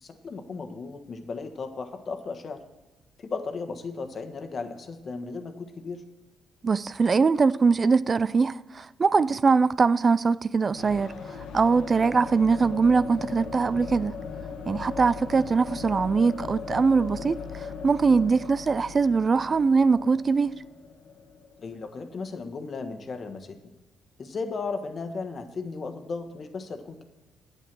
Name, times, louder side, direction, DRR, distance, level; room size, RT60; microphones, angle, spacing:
voice 1, 0.0-2.6 3.2-6.0 11.9-12.1 21.6-23.7 24.2-27.0, left 4 dB, 45° left, 1.3 m, -35 dB
voice 2, 6.6-14.2 14.7-20.5, right 4 dB, 35° right, 0.3 m, -22 dB
sound 1, 10.7-22.5, left 5 dB, 85° left, 1.4 m, -39 dB
9.4 x 8.7 x 6.1 m
cardioid pair, 90°, 0 cm